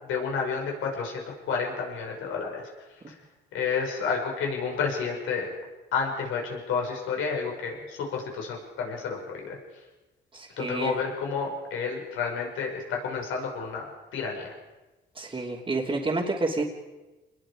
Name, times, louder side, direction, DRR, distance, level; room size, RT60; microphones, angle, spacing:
voice 1, 0.0-2.7 3.1-3.2 3.5-5.5 5.9-9.6 10.6-13.8 14.1-14.5, left 5 dB, 85° left, 0 dB, 6.2 m, -30 dB
voice 2, 10.3-11.0 15.1-16.6, right 3 dB, 30° right, -5 dB, 3.2 m, -29 dB
27.5 x 21.0 x 5.2 m, 1.1 s
cardioid pair, 90°, 20 cm